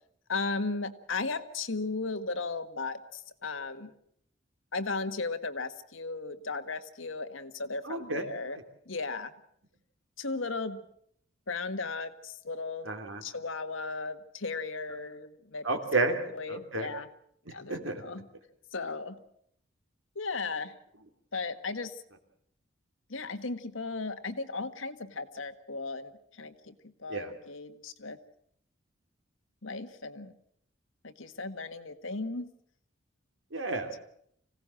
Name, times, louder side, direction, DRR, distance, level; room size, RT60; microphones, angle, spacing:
voice 1, 0.3-3.9 4.7-8.6 8.8-9.3 10.2-10.8 11.5-12.9 13.2-15.6 16.3-17.1 17.5-18.3 18.7-19.2 20.1-20.7 21.3-22.0 23.1-28.2 29.6-30.3 31.0-32.5, left 3 dB, 80° left, 9 dB, 1.6 m, -36 dB
voice 2, 7.8-8.3 12.8-13.2 15.6-16.2 16.5-16.9 17.7-18.0 27.1-27.3 33.5-34.0, right 3 dB, 80° right, 5 dB, 3.1 m, -31 dB
25.5 x 17.0 x 7.6 m, 0.69 s
head